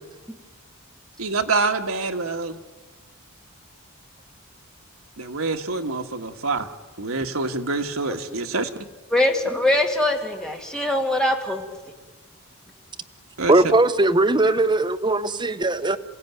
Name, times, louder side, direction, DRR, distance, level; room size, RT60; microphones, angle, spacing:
voice 1, 1.2-2.5 5.2-6.7 7.0-8.7 13.4-13.5, right 3 dB, 70° right, 5 dB, 1.6 m, -26 dB
voice 2, 9.1-11.6, left 1 dB, 5° left, 2 dB, 2.4 m, -22 dB
voice 3, 13.5-16.0, right 2 dB, 20° right, 8 dB, 0.9 m, -19 dB
27.0 x 16.5 x 9.4 m, 1.3 s
head